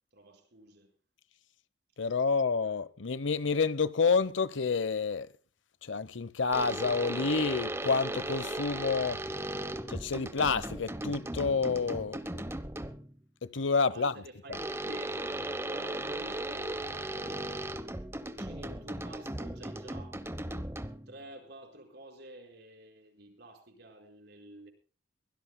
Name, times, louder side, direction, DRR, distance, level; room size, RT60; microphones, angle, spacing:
voice 1, 0.1-0.9 13.7-17.7 18.2-20.2 21.1-24.7, right 1 dB, 60° right, 4.7 m, -50 dB
voice 2, 2.0-5.3 5.8-9.2 9.9-12.2 13.4-14.1, left 4 dB, 85° left, 0.9 m, -29 dB
sound 1, 6.5-13.1 14.5-21.2, right 1 dB, 15° right, 0.9 m, -37 dB
23.5 x 17.0 x 2.2 m
head